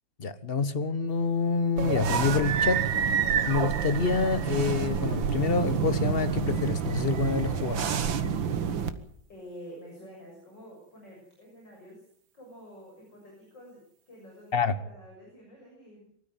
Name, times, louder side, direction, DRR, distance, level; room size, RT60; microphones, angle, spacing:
voice 1, 0.2-2.9 3.5-7.9 14.5-14.7, left 4 dB, 35° left, 13 dB, 1.3 m, -27 dB
sound 1, 1.8-8.9, right 7 dB, 85° right, 2.1 m, -28 dB
voice 2, 9.3-12.0 12.3-13.8 14.1-16.1, equal, 65° left, -1 dB, 7.4 m, -48 dB
25.0 x 13.5 x 9.2 m, 0.68 s
omnidirectional pair, 2.1 m